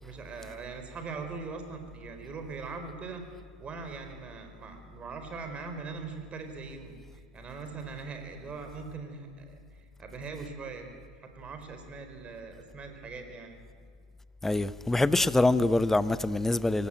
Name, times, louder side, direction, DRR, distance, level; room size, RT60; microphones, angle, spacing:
voice 1, 0.0-3.2 3.6-9.6 10.0-10.9 11.2-13.6, right 4 dB, 30° right, 4.6 m, -41 dB
voice 2, 14.4-16.9, left 2 dB, 10° left, 0.8 m, -25 dB
24.0 x 17.5 x 9.1 m
hypercardioid pair, 90°, 4 cm